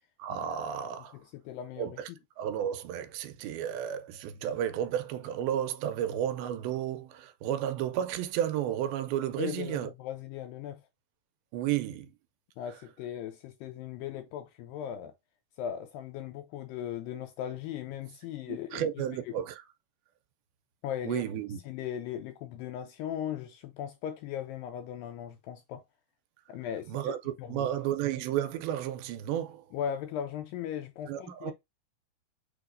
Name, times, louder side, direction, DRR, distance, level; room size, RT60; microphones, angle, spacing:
voice 1, 0.2-1.2 1.8-2.1 2.4-9.9 11.5-12.1 18.5-19.6 21.1-21.6 26.9-29.6 31.1-31.5, right 10 dB, 85° right, 2.4 m, -32 dB
voice 2, 1.1-2.0 9.4-10.9 12.6-15.1 15.6-19.4 20.8-21.4 21.6-25.8 26.5-27.1 27.4-27.7 29.7-31.5, left 9 dB, 80° left, 2.1 m, -38 dB
6.4 x 2.9 x 2.5 m
omnidirectional pair, 4.3 m